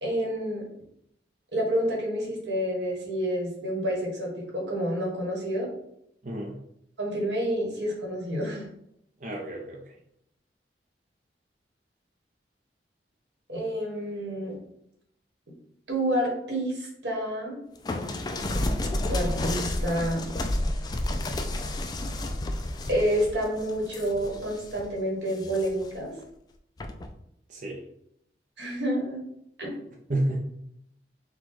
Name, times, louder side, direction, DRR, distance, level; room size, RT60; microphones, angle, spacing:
voice 1, 0.0-0.6 1.5-5.7 7.0-8.6 13.5-14.6 15.9-17.6 19.1-20.3 22.9-26.1 28.6-29.2 29.6-29.8, equal, 90° right, -1 dB, 1.6 m, -29 dB
voice 2, 6.2-6.6 9.2-9.9 27.5-27.8 30.1-30.4, right 1 dB, 45° right, -1 dB, 0.6 m, -30 dB
sound 1, 17.9-24.8 25.3-25.9 26.8-27.1, left 1 dB, 25° left, 0.3 m, -31 dB
4.7 x 2.3 x 4.0 m, 0.76 s
head